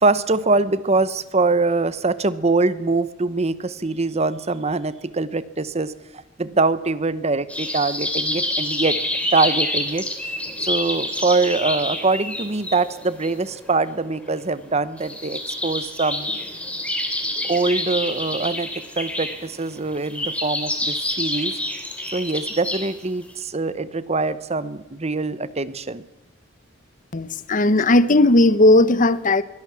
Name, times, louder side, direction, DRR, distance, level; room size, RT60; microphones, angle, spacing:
voice 1, 0.0-5.9 6.4-9.0 9.3-10.1 10.6-16.3 17.5-21.5 22.1-26.0, right 3 dB, 35° right, 0.9 m, -23 dB
sound 1, 7.5-22.9 23.3-23.4, left 1 dB, 5° left, 3.1 m, -28 dB
voice 2, 27.1-29.4, left 2 dB, 40° left, 0.9 m, -16 dB
22.5 x 17.0 x 7.6 m
head